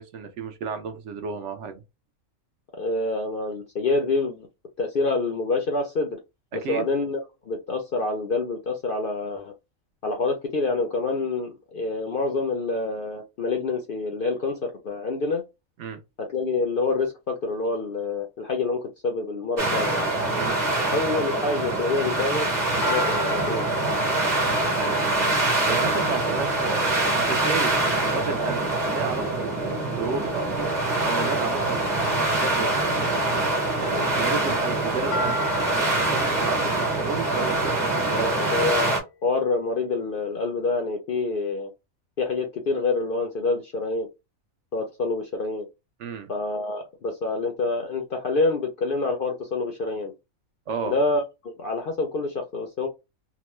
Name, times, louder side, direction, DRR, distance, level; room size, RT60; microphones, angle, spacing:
voice 1, 0.0-1.7 6.6-6.9 15.8-16.0 20.4-20.6 24.7-25.0 25.7-26.8 27.1-30.7 31.0-31.8 32.1-33.5 33.8-35.4 36.0-38.5 46.0-46.3 50.7-50.9, right 5 dB, 65° right, 0.8 m, -32 dB
voice 2, 2.8-4.5 4.8-6.2 6.5-7.2 7.4-9.5 10.0-15.4 16.2-20.1 20.9-22.5 22.9-23.6 38.1-41.7 42.2-44.1 44.7-45.7 46.3-50.1 50.9-52.9, left 3 dB, 60° left, 0.5 m, -27 dB
sound 1, 19.6-39.0, right 2 dB, 35° right, 1.1 m, -24 dB
sound 2, 22.8-26.8 35.1-39.2, left 1 dB, 85° left, 1.0 m, -36 dB
2.9 x 2.1 x 3.0 m
omnidirectional pair, 1.5 m